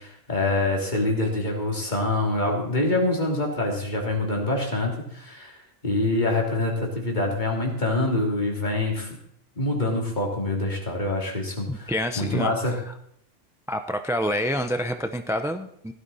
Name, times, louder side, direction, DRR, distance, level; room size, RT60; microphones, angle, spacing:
voice 1, 0.0-5.6 5.8-9.1 9.6-12.8, left 2 dB, 40° left, 0 dB, 3.1 m, -25 dB
voice 2, 11.7-12.9 13.7-15.9, equal, 5° right, 8 dB, 0.4 m, -28 dB
16.0 x 12.5 x 4.2 m, 0.69 s
omnidirectional pair, 1.2 m